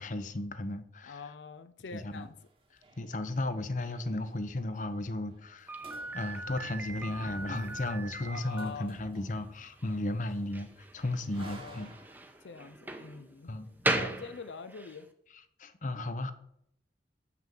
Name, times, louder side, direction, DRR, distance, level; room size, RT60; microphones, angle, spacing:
voice 1, 0.0-1.2 1.9-2.3 3.0-5.7 6.1-10.7 10.9-11.9 13.5-13.7 15.6-16.3, left 2 dB, 45° left, 11 dB, 0.8 m, -34 dB
voice 2, 1.1-2.4 8.2-9.0 11.4-11.9 12.4-13.5 13.9-15.1, left 5 dB, 90° left, 11 dB, 0.5 m, -45 dB
sound 1, 2.1-4.6 4.9-5.0 5.2-5.5 5.8-12.4, right 2 dB, 30° right, 1.3 m, -52 dB
Slam, 5.7-15.0, right 2 dB, 10° right, 0.8 m, -38 dB
6.9 x 5.9 x 7.5 m, 0.72 s
head